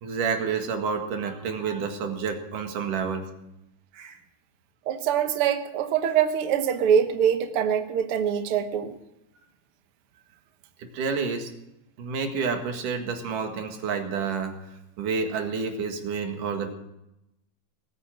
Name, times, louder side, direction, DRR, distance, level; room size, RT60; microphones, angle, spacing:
voice 1, 0.0-3.2 3.9-4.2 10.8-11.5 12.0-16.7, right 5 dB, 60° right, 4 dB, 3.2 m, -29 dB
voice 2, 4.9-8.9, right 8 dB, 90° right, 7 dB, 1.2 m, -24 dB
20.0 x 9.1 x 7.4 m, 0.87 s
omnidirectional pair, 4.4 m